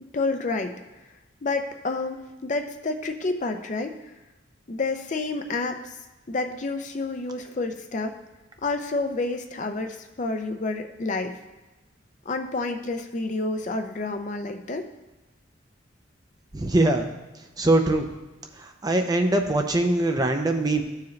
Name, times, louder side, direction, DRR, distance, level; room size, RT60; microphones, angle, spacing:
voice 1, 0.1-0.7 1.4-4.0 4.7-5.9 6.3-8.2 8.6-11.3 12.3-14.9, left 3 dB, 40° left, 6 dB, 0.5 m, -29 dB
voice 2, 16.5-17.1 17.6-18.1 18.6-20.8, right 2 dB, 20° right, 4 dB, 0.5 m, -22 dB
14.0 x 4.7 x 3.2 m, 1.1 s
head